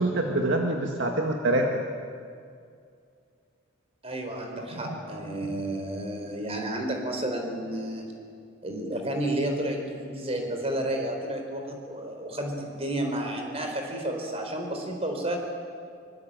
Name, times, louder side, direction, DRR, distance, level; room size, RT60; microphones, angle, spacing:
voice 1, 0.0-1.8 4.5-5.0, right 1 dB, 60° right, 2 dB, 1.9 m, -26 dB
voice 2, 4.0-8.1 8.6-15.4, right 1 dB, 30° right, 3 dB, 4.4 m, -31 dB
24.5 x 23.5 x 9.0 m, 2.3 s
head